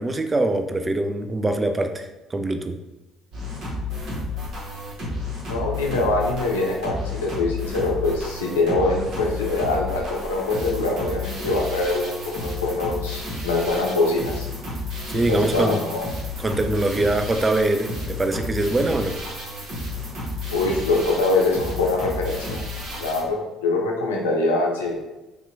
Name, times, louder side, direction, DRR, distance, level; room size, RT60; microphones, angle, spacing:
voice 1, 0.0-2.8 15.1-15.9 16.4-19.2, right 2 dB, 25° right, 7 dB, 0.3 m, -23 dB
sound 1, 3.3-23.2, left 2 dB, 60° right, 1.1 m, -32 dB
voice 2, 5.5-14.5 15.1-16.0 20.5-22.6 23.0-25.0, left 2 dB, 85° left, -1 dB, 0.5 m, -24 dB
3.4 x 2.7 x 2.5 m, 1.0 s
hypercardioid pair, 55°, 0 cm